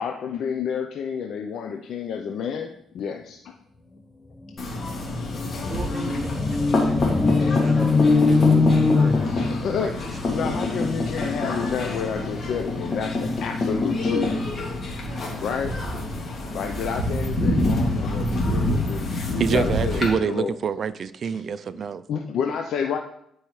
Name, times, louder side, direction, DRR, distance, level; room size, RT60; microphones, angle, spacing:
voice 1, 0.0-3.5 9.3-14.3 15.4-15.8 16.5-20.5 22.1-23.0, left 7 dB, 70° left, 0.6 m, -30 dB
sound 1, 4.5-4.6 4.8-9.9, left 4 dB, 25° left, 0.7 m, -21 dB
sound 2, 4.6-20.1, left 2 dB, 50° left, 2.3 m, -26 dB
voice 2, 5.7-9.9 10.4-10.6, right 3 dB, 30° right, 1.2 m, -37 dB
voice 3, 19.3-22.0, right 6 dB, 50° right, 0.4 m, -26 dB
12.0 x 4.7 x 3.2 m
cardioid pair, 90°, 0 cm